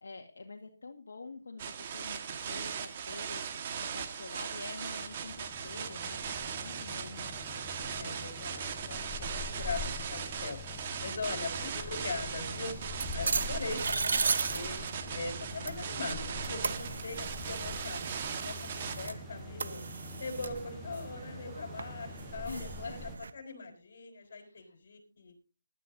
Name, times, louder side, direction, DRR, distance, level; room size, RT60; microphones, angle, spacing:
voice 1, 0.0-8.5 22.4-22.9 24.3-24.7, left 3 dB, 75° left, 2 dB, 1.9 m, -47 dB
sound 1, 1.6-19.1, right 7 dB, 35° right, 1.6 m, -39 dB
sound 2, 4.9-23.2, left 4 dB, ahead, 1.0 m, -45 dB
voice 2, 8.0-9.8 10.1-10.6 11.0-12.8 13.1-14.8 15.1-18.0 18.3-19.8 20.2-25.3, left 3 dB, 55° left, 5 dB, 5.1 m, -41 dB
sound 3, 11.8-23.3, right 4 dB, 65° right, 1.0 m, -37 dB
18.5 x 12.0 x 2.8 m, 0.34 s
hypercardioid pair, 160°, 0 cm